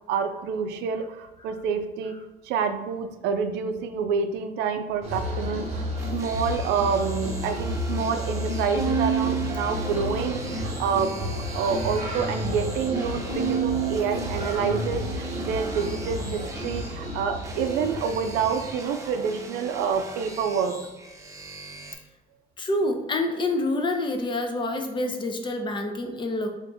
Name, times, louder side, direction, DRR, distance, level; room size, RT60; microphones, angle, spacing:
voice 1, 0.1-2.2 2.4-20.8, right 6 dB, 85° right, 8 dB, 0.4 m, -28 dB
sound 1, 5.0-18.7, left 1 dB, 40° right, 1.1 m, -32 dB
sound 2, 6.0-21.9, right 2 dB, 20° right, 0.5 m, -42 dB
Bowed string instrument, 8.7-11.1 11.5-12.3 13.3-15.8, right 8 dB, 90° left, 1.2 m, -31 dB
voice 2, 22.6-26.5, left 2 dB, 30° left, 5 dB, 0.6 m, -27 dB
3.4 x 2.5 x 3.8 m, 1.1 s
cardioid pair, 110°, 17 cm